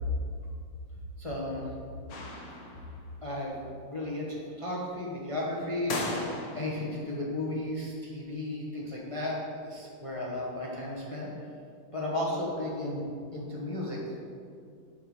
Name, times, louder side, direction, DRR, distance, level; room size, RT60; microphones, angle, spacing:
voice 1, 1.2-1.7 3.2-3.5 3.9-9.4 9.6-11.3 11.9-13.0 13.3-14.0, left 1 dB, 25° left, -5 dB, 0.7 m, -34 dB
sound 1, 2.1-3.1 5.9-6.9, left 2 dB, 60° left, 1.2 m, -36 dB
8.6 x 3.6 x 6.4 m, 2.3 s
omnidirectional pair, 2.2 m